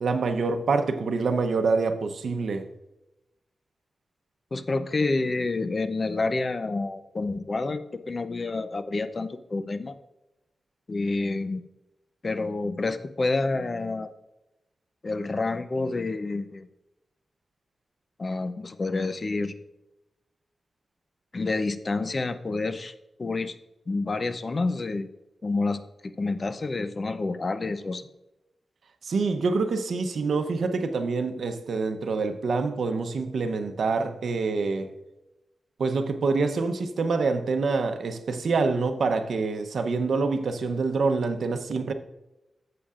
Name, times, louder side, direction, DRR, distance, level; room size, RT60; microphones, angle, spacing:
voice 1, 0.0-2.7 29.0-34.9 35.8-41.9, right 4 dB, 80° right, 0.8 m, -26 dB
voice 2, 4.5-7.8 8.1-9.9 10.9-11.6 12.2-14.1 15.0-16.7 18.2-19.5 21.3-22.9 23.2-23.5 23.9-25.1 25.4-28.1, left 3 dB, 40° left, 0.6 m, -28 dB
14.0 x 7.6 x 2.5 m
wide cardioid pair, 105°, 0 cm